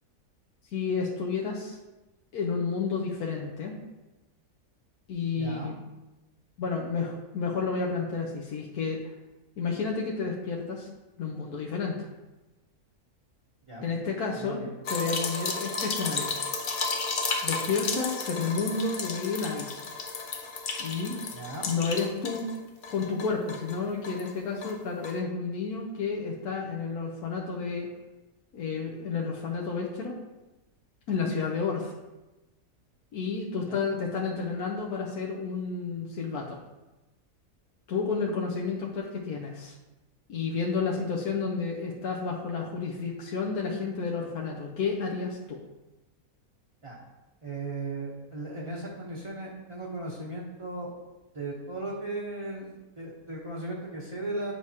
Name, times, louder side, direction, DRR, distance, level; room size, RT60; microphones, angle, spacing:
voice 1, 0.7-1.8 2.3-3.7 5.1-5.7 6.6-9.0 9.6-10.9 11.2-11.9 13.8-14.6 14.9-16.3 17.4-19.9 20.8-21.2 21.7-22.5 22.9-27.9 28.5-30.1 31.1-31.9 33.1-36.6 37.9-39.8 40.3-45.6, left 5 dB, 85° left, -2 dB, 1.3 m, -31 dB
voice 2, 5.4-5.7 13.7-13.9 14.4-14.7 21.3-21.7 33.7-33.8 46.8-47.0 47.4-50.9 51.3-54.5, right 2 dB, 25° right, -6 dB, 0.8 m, -37 dB
sound 1, 14.8-22.6 22.8-24.3 24.6-24.8 25.0-25.2, left 4 dB, 60° left, 0.5 m, -33 dB
9.0 x 4.8 x 2.8 m, 1.0 s
omnidirectional pair, 1.6 m